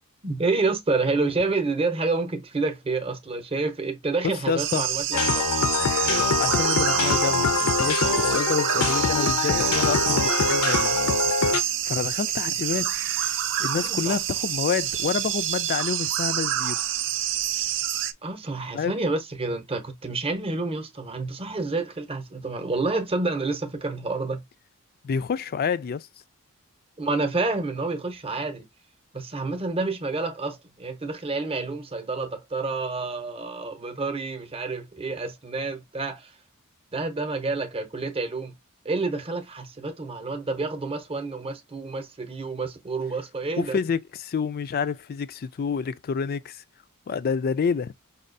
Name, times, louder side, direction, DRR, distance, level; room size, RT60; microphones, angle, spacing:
voice 1, 0.2-5.4 13.8-14.2 18.2-24.4 27.0-28.6 29.1-36.3 36.9-38.5 38.8-43.8, right 3 dB, 25° right, 0.8 m, -29 dB
voice 2, 4.2-4.9 6.3-11.0 11.8-12.9 13.6-16.8 18.7-18.9 25.0-26.1 43.6-46.6 47.1-47.9, left 6 dB, 40° left, 0.3 m, -28 dB
sound 1, 4.6-18.1, right 11 dB, 60° right, 0.4 m, -27 dB
sound 2, 5.1-11.6, left 4 dB, 80° left, 0.6 m, -24 dB
5.3 x 2.4 x 2.6 m
head